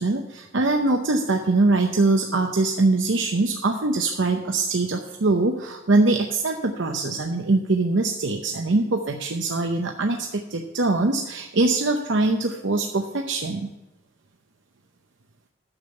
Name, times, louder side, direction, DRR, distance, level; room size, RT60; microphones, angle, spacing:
voice 1, 0.0-13.7, right 2 dB, 70° right, 3 dB, 0.8 m, -23 dB
9.7 x 7.2 x 5.6 m, 1.0 s
head